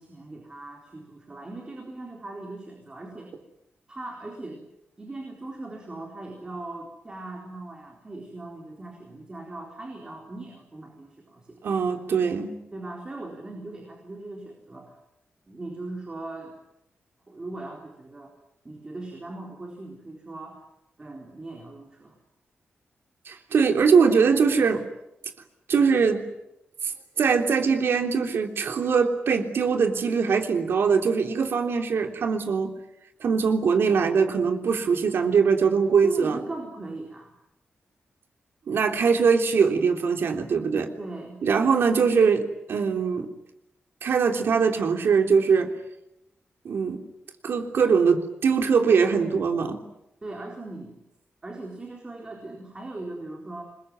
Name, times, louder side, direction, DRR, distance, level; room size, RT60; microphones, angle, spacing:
voice 1, 0.0-3.3 3.9-4.6 5.0-11.7 12.7-14.9 15.5-16.6 17.3-18.3 18.6-20.6 21.0-22.2 36.0-37.3 41.0-41.4 50.2-51.0 51.4-53.6, right 2 dB, 20° right, 1 dB, 4.2 m, -39 dB
voice 2, 11.6-12.5 23.2-24.8 25.7-26.2 26.8-26.9 27.2-32.7 33.2-36.4 38.7-40.9 41.4-43.3 44.0-45.7 46.6-47.0 47.4-49.8, right 5 dB, 70° right, 4 dB, 3.5 m, -22 dB
27.5 x 21.5 x 9.5 m, 0.87 s
wide cardioid pair, 180°, 4 cm